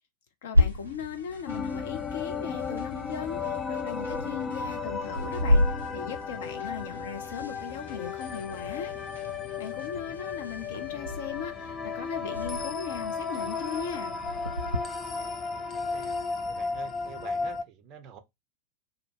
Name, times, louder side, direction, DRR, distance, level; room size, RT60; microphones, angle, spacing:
voice 1, 0.4-3.6 3.8-5.6 5.9-8.9 9.6-14.2, left 7 dB, 55° left, 0.7 m, -38 dB
sound 1, 0.5-14.8, left 1 dB, 85° right, 0.3 m, -32 dB
sound 2, 0.6-10.1, equal, 80° left, 1.1 m, -53 dB
sound 3, 1.5-17.6, left 5 dB, 20° left, 0.3 m, -34 dB
voice 2, 14.9-16.1 16.5-18.2, right 7 dB, 35° right, 0.5 m, -48 dB
2.7 x 2.1 x 2.9 m
figure-of-eight pair, 90°, 0 cm